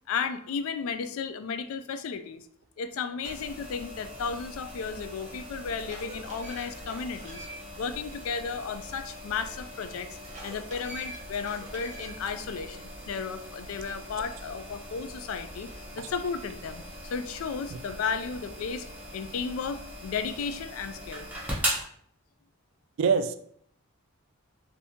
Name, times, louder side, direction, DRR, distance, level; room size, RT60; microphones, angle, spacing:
voice 1, 0.1-2.4 2.8-7.4 7.8-10.1 10.4-18.8 19.1-21.3, left 5 dB, 75° left, 10 dB, 0.3 m, -34 dB
sound 1, 3.2-21.8, equal, 10° right, 0.8 m, -40 dB
sound 2, 5.5-7.8 8.2-8.3 10.2-12.3, right 1 dB, 35° right, 0.9 m, -45 dB
voice 2, 23.0-23.4, right 6 dB, 60° right, 8 dB, 0.3 m, -26 dB
3.4 x 2.6 x 2.7 m, 0.65 s
head